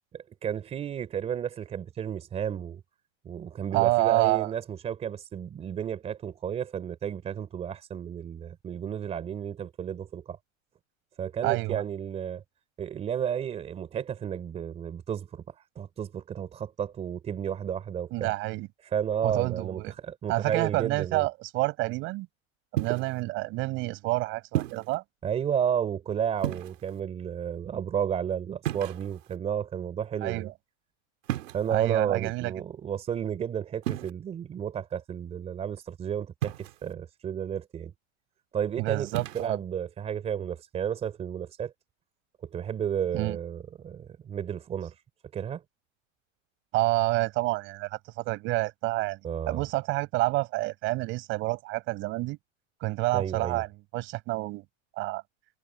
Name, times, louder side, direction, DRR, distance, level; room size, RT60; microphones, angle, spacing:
voice 1, 0.4-2.8 3.2-10.4 11.2-12.4 12.8-18.3 18.8-21.3 25.2-30.5 31.5-37.9 38.5-39.1 39.3-41.7 42.4-44.9 45.3-45.6 49.2-49.6 53.1-53.6, right 8 dB, 15° right, 4.1 m, -32 dB
voice 2, 3.7-4.5 11.4-11.8 18.1-18.7 19.2-19.9 20.3-22.3 22.7-25.0 30.2-30.5 31.7-32.5 38.8-39.6 43.1-43.4 46.7-49.2 49.5-52.4 52.8-54.6 55.0-55.2, right 21 dB, 30° right, 6.6 m, -28 dB
sound 1, 22.8-23.2 24.5-25.0 26.4-27.0 28.6-29.4 31.2-31.8 33.8-34.1 36.4-36.9 39.1-39.5, right 13 dB, 90° right, 3.5 m, -32 dB
supercardioid pair, 180°, 37 cm